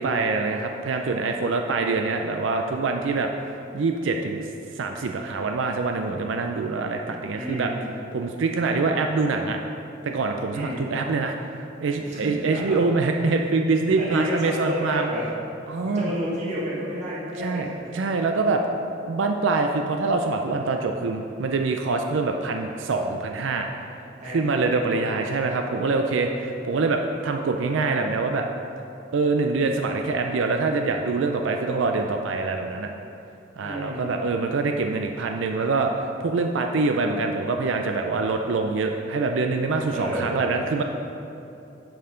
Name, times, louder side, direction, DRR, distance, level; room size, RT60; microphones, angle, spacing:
voice 1, 0.0-3.3 3.7-4.5 4.8-7.7 8.1-9.6 10.0-15.1 15.7-16.1 17.4-17.7 17.9-18.6 19.1-23.7 24.2-26.3 26.7-28.5 29.1-32.9 33.6-40.8, right 3 dB, 80° right, 4 dB, 0.4 m, -25 dB
voice 2, 7.3-8.0 10.5-10.9 12.0-12.8 14.0-15.3 15.9-18.0 24.2-25.3 25.9-26.4 33.6-34.2 39.9-40.4, equal, 40° right, -7 dB, 1.6 m, -31 dB
10.0 x 5.5 x 3.8 m, 2.8 s
head